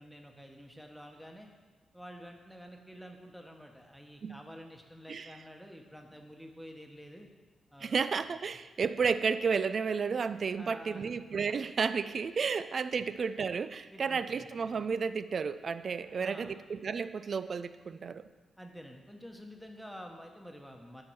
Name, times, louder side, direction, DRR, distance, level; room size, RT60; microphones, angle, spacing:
voice 1, 0.0-1.5 1.9-7.3 7.7-8.0 10.6-11.1 12.9-13.0 13.9-14.4 16.0-16.5 18.6-21.0, equal, ahead, 3 dB, 1.1 m, -49 dB
voice 2, 7.8-18.2, right 5 dB, 55° right, 13 dB, 0.3 m, -32 dB
10.5 x 4.5 x 4.7 m, 1.3 s
cardioid pair, 75°, 0 cm